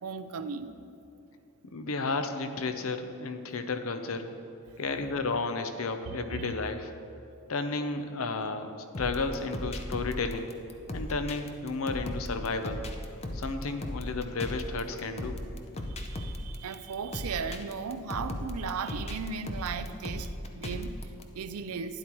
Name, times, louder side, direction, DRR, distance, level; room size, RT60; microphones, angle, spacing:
voice 1, 0.0-0.7 3.5-3.6 6.1-6.5 15.9-22.0, right 5 dB, 85° right, 11 dB, 0.5 m, -37 dB
voice 2, 1.7-4.3 4.8-6.9 7.5-10.5 10.9-12.8 13.3-15.4, left 3 dB, 70° left, 8 dB, 0.7 m, -32 dB
sound 1, 8.9-21.2, left 1 dB, 30° left, 0.6 m, -37 dB
12.0 x 10.0 x 3.0 m, 2.6 s
head